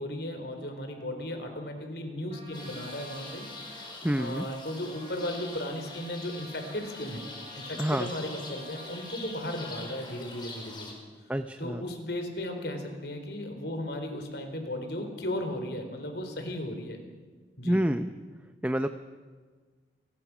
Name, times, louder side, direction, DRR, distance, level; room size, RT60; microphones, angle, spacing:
voice 1, 0.0-3.8 4.2-7.3 7.5-11.0 11.6-17.0 17.6-17.8, left 1 dB, 65° left, 5 dB, 4.1 m, -36 dB
Trumpet, 2.3-9.6, right 1 dB, 35° right, 6.6 m, -51 dB
sound 1, 2.5-10.9, left 3 dB, 25° left, 4.6 m, -44 dB
voice 2, 4.0-4.5 7.8-8.1 11.3-11.8 17.6-18.1 18.6-18.9, right 1 dB, 10° right, 8 dB, 0.6 m, -27 dB
29.5 x 20.0 x 6.2 m, 1.5 s
head